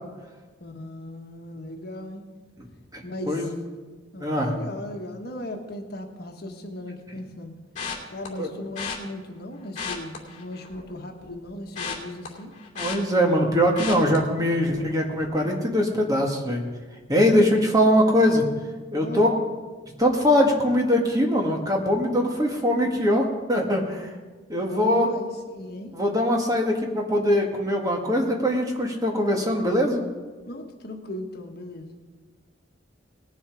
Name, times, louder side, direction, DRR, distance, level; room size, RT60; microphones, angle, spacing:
voice 1, 0.6-2.2 3.0-3.5 4.1-7.5 8.1-12.5 19.0-19.3 24.7-25.9 30.4-32.0, left 1 dB, 60° left, 4 dB, 1.4 m, -37 dB
voice 2, 2.9-3.5 4.2-4.5 8.4-8.5 12.7-16.6 17.1-18.4 18.9-19.3 20.0-24.1 24.5-25.1 25.9-30.0, equal, 20° right, 1 dB, 1.8 m, -22 dB
sound 1, 7.8-8.3 8.8-9.0 9.6-10.9 11.2-13.4 13.8-14.2 14.6-14.9 15.2-15.3, left 6 dB, 40° left, 2.6 m, -34 dB
19.5 x 7.3 x 4.9 m, 1.3 s
head